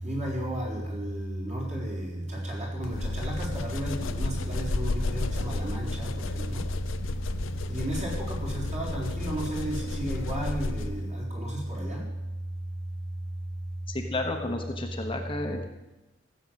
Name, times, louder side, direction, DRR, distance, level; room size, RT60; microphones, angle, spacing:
voice 1, 0.0-6.7 7.7-12.0, right 1 dB, 35° right, -3 dB, 4.5 m, -32 dB
sound 1, 2.8-11.1, left 3 dB, 75° left, 0.7 m, -33 dB
voice 2, 13.9-15.6, left 2 dB, 25° left, 3 dB, 1.1 m, -32 dB
15.5 x 7.8 x 7.6 m, 1.1 s
head